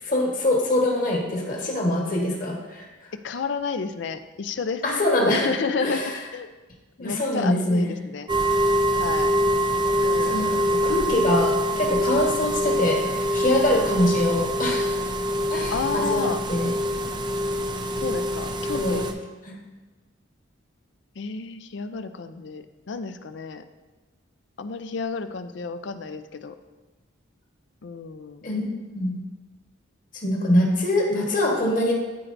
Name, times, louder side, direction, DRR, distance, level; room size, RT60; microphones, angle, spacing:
voice 1, 0.0-2.9 4.8-5.5 5.8-6.1 7.0-7.9 10.2-15.0 15.5-16.7 18.7-19.0 19.5-19.6 28.4-28.7 28.9-29.2 30.1-31.9, left 1 dB, 40° left, 0 dB, 1.3 m, -24 dB
voice 2, 3.1-4.8 5.3-6.5 7.0-8.3 9.0-9.4 10.0-10.6 15.7-16.4 18.0-19.1 21.2-23.6 24.6-26.6 27.8-28.5, left 5 dB, 65° left, 10 dB, 0.4 m, -31 dB
sound 1, 8.3-19.1, equal, 20° right, 0.4 m, -24 dB
13.0 x 4.5 x 2.6 m, 1.2 s
head